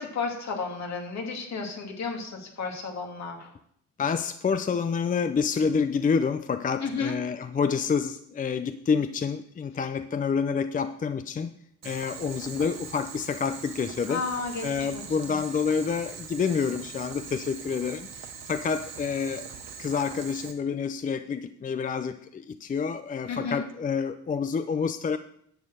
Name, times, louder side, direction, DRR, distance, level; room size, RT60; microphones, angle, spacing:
voice 1, 0.0-3.5 6.8-7.1 14.1-15.0 23.3-23.6, left 4 dB, 65° left, 2 dB, 2.4 m, -33 dB
voice 2, 4.0-11.5 11.8-14.2 14.6-19.5 19.8-25.2, left 6 dB, 25° left, 10 dB, 0.5 m, -28 dB
Boiling, 11.8-20.5, right 7 dB, 60° right, 1.3 m, -42 dB
10.5 x 4.5 x 7.9 m, 0.69 s
cardioid pair, 90°, 30 cm